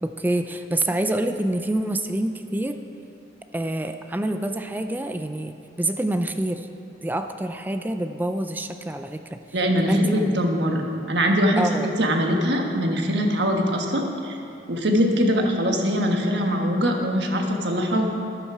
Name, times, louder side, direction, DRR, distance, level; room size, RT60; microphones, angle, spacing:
voice 1, 0.0-2.8 3.5-6.7 7.0-9.4 9.9-10.2 11.6-11.9, right 1 dB, 10° right, 7 dB, 0.4 m, -26 dB
voice 2, 9.5-10.8 11.1-14.4 14.7-18.1, equal, 75° right, 2 dB, 1.3 m, -22 dB
12.5 x 10.5 x 4.8 m, 2.6 s
head